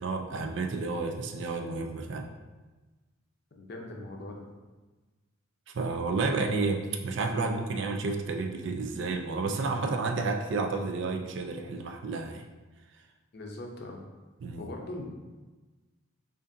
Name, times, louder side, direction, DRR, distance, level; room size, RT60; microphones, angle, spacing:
voice 1, 0.0-2.3 5.7-12.4 14.4-14.6, right 3 dB, 55° right, 4 dB, 0.4 m, -31 dB
voice 2, 3.6-4.5 13.3-14.1 14.6-15.1, left 2 dB, 50° left, 0 dB, 0.5 m, -40 dB
5.0 x 2.5 x 2.6 m, 1.2 s
head